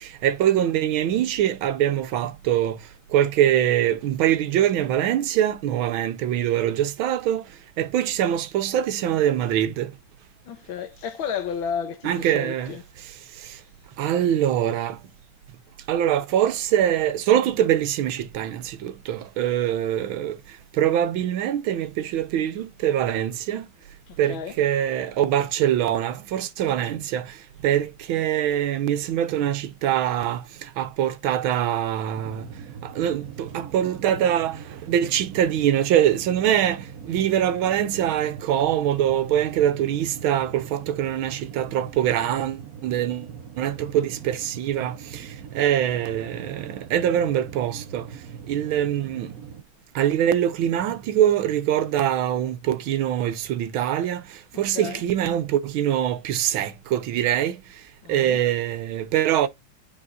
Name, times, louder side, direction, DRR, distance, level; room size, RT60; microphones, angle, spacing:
voice 1, 0.0-2.8 3.1-7.4 7.8-9.9 12.0-12.7 14.0-15.0 15.9-20.4 20.8-23.6 24.2-27.3 27.6-30.4 30.8-32.4 32.8-34.6 34.9-43.3 43.6-45.2 45.5-48.1 48.5-49.3 49.9-54.2 54.6-57.6 58.1-59.5, right 11 dB, 80° right, 1.5 m, -23 dB
voice 2, 10.5-12.8 24.1-24.5 54.7-55.0 58.0-58.4, left 7 dB, 70° left, 1.7 m, -32 dB
sound 1, 32.1-49.6, right 7 dB, 60° right, 0.9 m, -41 dB
10.0 x 4.6 x 2.4 m
omnidirectional pair, 2.3 m